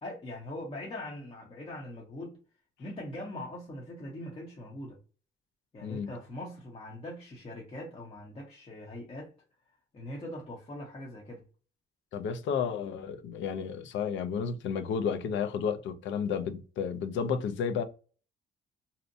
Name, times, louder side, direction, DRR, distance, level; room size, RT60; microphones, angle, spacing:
voice 1, 0.0-2.4 2.8-5.0 5.7-9.3 9.9-11.4, left 1 dB, 30° left, 0.7 m, -41 dB
voice 2, 5.8-6.1 12.1-17.8, left 6 dB, 70° left, 0.5 m, -32 dB
2.7 x 2.1 x 2.5 m
cardioid pair, 90°, 20 cm